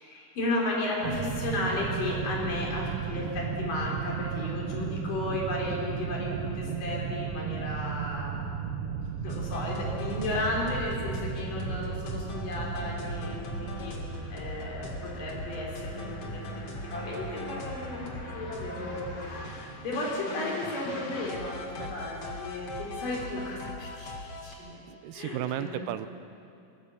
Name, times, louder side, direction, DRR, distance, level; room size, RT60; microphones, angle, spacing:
voice 1, 0.0-8.4 9.1-13.9 14.3-24.8 25.1-25.9, left 2 dB, 75° left, -2 dB, 5.4 m, -34 dB
sound 1, 1.0-20.2, right 7 dB, 65° right, 1.6 m, -36 dB
sound 2, 9.3-24.6, left 1 dB, 50° left, 3.0 m, -39 dB
voice 2, 24.9-26.1, right 12 dB, 85° right, 13 dB, 2.4 m, -35 dB
22.5 x 19.0 x 7.1 m, 2.6 s
omnidirectional pair, 3.8 m